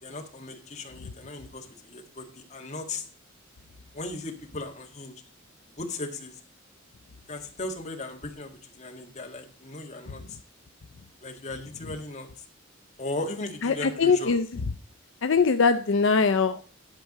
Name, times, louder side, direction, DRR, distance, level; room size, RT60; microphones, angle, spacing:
voice 1, 0.0-3.0 3.9-5.1 5.8-6.3 7.3-10.4 11.2-12.3 13.0-14.4, left 2 dB, 35° left, 2 dB, 1.7 m, -37 dB
voice 2, 13.6-14.4 15.2-16.6, left 5 dB, 65° left, 8 dB, 0.5 m, -22 dB
11.5 x 4.6 x 6.5 m, 0.41 s
head